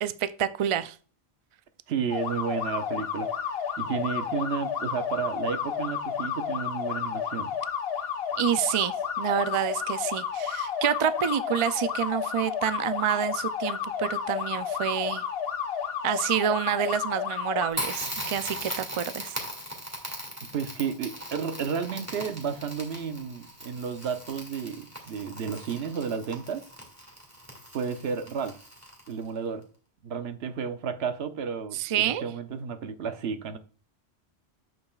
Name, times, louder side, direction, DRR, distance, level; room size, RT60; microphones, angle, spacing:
voice 1, 0.0-1.0 8.4-15.2 16.0-19.4 31.7-32.2, right 9 dB, 60° right, 0.3 m, -28 dB
voice 2, 1.9-7.5 20.5-26.7 27.7-28.6 29.1-29.7 30.0-33.6, right 6 dB, 75° right, 1.0 m, -32 dB
sound 1, 2.1-17.7, left 7 dB, 65° left, 1.1 m, -31 dB
Crackle, 17.7-29.3, equal, 15° right, 1.9 m, -39 dB
sound 2, 18.4-19.8, left 1 dB, 15° left, 1.4 m, -45 dB
8.6 x 6.5 x 2.3 m
omnidirectional pair, 1.1 m